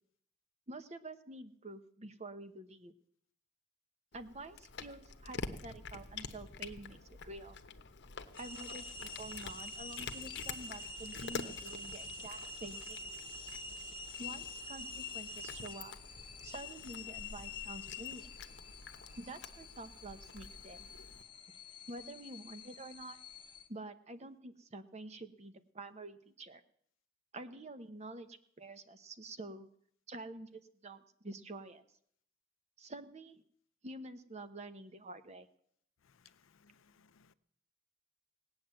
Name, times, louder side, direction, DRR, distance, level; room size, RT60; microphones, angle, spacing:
voice 1, 0.7-2.9 4.1-7.6 8.4-13.1 14.2-15.9 16.4-18.3 19.2-20.9 21.9-23.2 23.7-26.6 27.3-29.7 30.1-31.8 32.8-33.4 33.8-35.5, right 2 dB, 35° right, 0.9 m, -48 dB
Cat, 4.1-21.2, left 4 dB, 60° left, 1.0 m, -48 dB
sound 1, 8.3-23.7, left 3 dB, 25° left, 1.0 m, -47 dB
voice 2, 36.0-37.3, left 6 dB, 75° left, 0.6 m, -66 dB
17.5 x 8.9 x 7.7 m
head